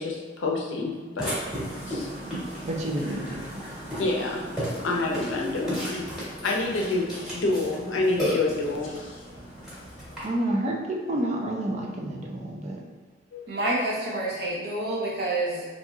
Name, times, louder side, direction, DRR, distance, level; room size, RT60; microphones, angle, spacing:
voice 1, 0.0-1.3 1.9-2.2 4.0-4.5 4.8-6.1 6.4-9.4 10.1-10.2 13.3-13.5, left 2 dB, 70° left, -1 dB, 0.6 m, -28 dB
Burping eructation, 1.2-10.2, equal, ahead, 1.3 m, -34 dB
voice 2, 2.6-3.6 10.2-12.8, right 1 dB, 35° right, -1 dB, 0.4 m, -29 dB
voice 3, 13.5-15.7, right 1 dB, 55° right, -5 dB, 0.9 m, -28 dB
4.2 x 2.6 x 2.4 m, 1.4 s
head